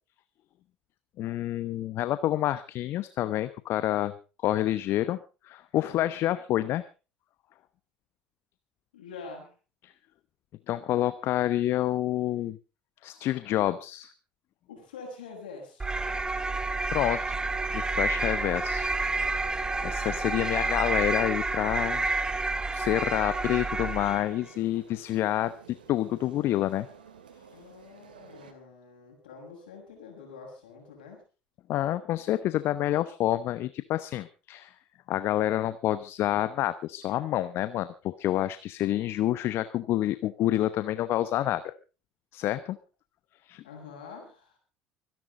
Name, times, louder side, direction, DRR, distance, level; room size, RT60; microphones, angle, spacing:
voice 1, 1.2-4.1 4.4-5.2 5.4-6.8 9.8-9.9 10.7-12.6 13.0-14.1 16.9-17.2 17.7-18.9 19.8-22.0 22.7-26.9 31.7-34.7 35.1-41.7 42.3-42.8 43.4-43.6, left 13 dB, 55° left, 14 dB, 0.9 m, -28 dB
voice 2, 8.9-9.5 14.7-15.9 27.5-31.2 43.6-44.6, left 4 dB, 80° left, 1 dB, 6.5 m, -45 dB
sound 1, 15.8-24.4, right 3 dB, 15° right, 1.5 m, -29 dB
sound 2, 15.9-28.5, right 6 dB, 85° right, 2.4 m, -52 dB
25.0 x 11.0 x 3.8 m, 0.33 s
hypercardioid pair, 65°, 5 cm